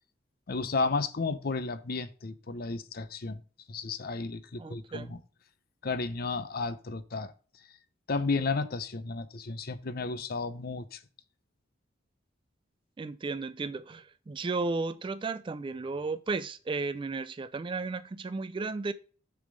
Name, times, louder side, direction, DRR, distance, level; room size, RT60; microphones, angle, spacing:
voice 1, 0.5-3.4 3.7-5.2 5.8-7.3 8.1-11.0, left 4 dB, 50° left, 0.6 m, -33 dB
voice 2, 4.6-5.1 13.0-18.9, right 3 dB, 25° right, 0.3 m, -34 dB
6.8 x 3.6 x 6.3 m
head